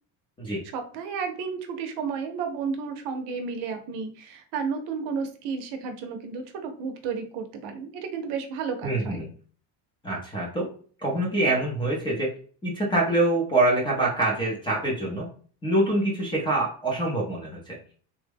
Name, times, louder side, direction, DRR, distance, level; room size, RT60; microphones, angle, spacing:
voice 1, 0.7-9.2, right 5 dB, 65° right, 6 dB, 0.7 m, -32 dB
voice 2, 8.8-9.3 10.0-10.7 11.0-12.4 12.6-15.3 15.6-17.8, right 2 dB, 10° left, -2 dB, 0.5 m, -25 dB
3.4 x 2.1 x 3.4 m, 0.43 s
cardioid pair, 170°, 43 cm